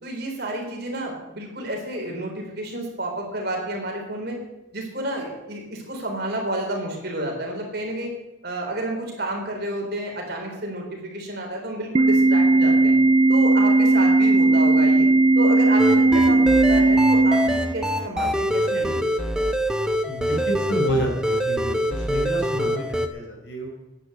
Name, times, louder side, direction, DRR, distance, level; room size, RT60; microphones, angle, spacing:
voice 1, 0.0-4.4 4.7-8.1 8.4-12.9 13.3-15.1 15.4-19.1, right 1 dB, 55° right, 1 dB, 3.9 m, -30 dB
Organ, 11.9-18.0, right 2 dB, 30° right, 0.3 m, -17 dB
sound 1, 15.8-23.1, equal, 5° right, 0.8 m, -24 dB
voice 2, 20.0-23.8, equal, 65° left, 1 dB, 4.1 m, -29 dB
10.5 x 10.0 x 7.9 m, 0.96 s
head